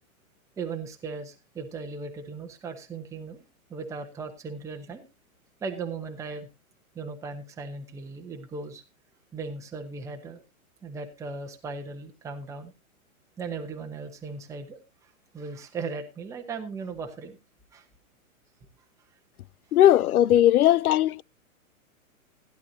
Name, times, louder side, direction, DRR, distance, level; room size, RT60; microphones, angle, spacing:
voice 1, 0.6-3.4 3.7-5.0 5.6-6.5 6.9-8.8 9.3-10.4 10.8-12.7 13.4-17.4 17.7-17.9, right 4 dB, 5° right, 0.9 m, -37 dB
voice 2, 19.7-21.2, left 12 dB, 85° left, 0.6 m, -18 dB
15.5 x 10.5 x 2.7 m
hypercardioid pair, 150°, 42 cm